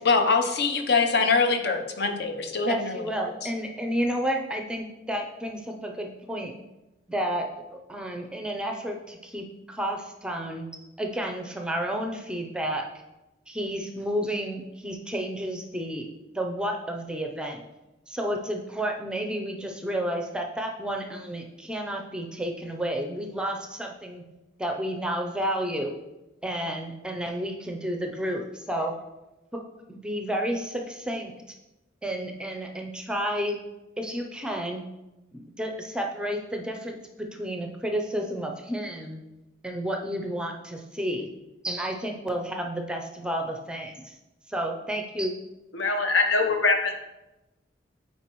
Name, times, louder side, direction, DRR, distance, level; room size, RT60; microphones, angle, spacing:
voice 1, 0.0-3.0, left 4 dB, 60° left, 6 dB, 0.7 m, -23 dB
voice 2, 2.6-6.5 7.1-10.7 11.0-12.9 13.5-16.1 16.3-17.6 18.1-24.2 24.6-25.9 26.4-28.9 29.5-29.6 29.9-31.3 32.0-33.6 34.0-34.9 35.3-37.0 37.3-39.2 39.6-41.3 41.6-44.1 44.5-45.4, equal, 5° right, 2 dB, 0.5 m, -31 dB
voice 3, 45.7-46.9, left 3 dB, 80° left, 4 dB, 1.0 m, -23 dB
9.0 x 4.5 x 3.0 m, 0.99 s
head